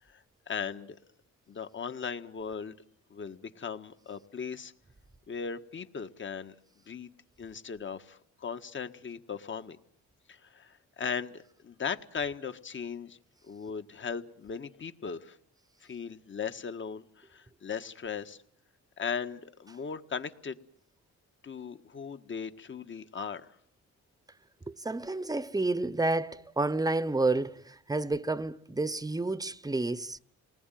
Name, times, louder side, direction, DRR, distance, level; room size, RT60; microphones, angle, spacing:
voice 1, 0.1-1.0 1.5-2.7 3.1-4.7 5.3-6.6 6.9-7.1 7.4-9.8 10.3-13.2 13.4-15.4 15.8-18.4 19.0-20.6 21.4-23.5, left 6 dB, 40° left, 1.7 m, -38 dB
voice 2, 24.7-30.2, right 2 dB, 10° right, 1.0 m, -30 dB
28.5 x 20.0 x 9.3 m
cardioid pair, 90°, 30 cm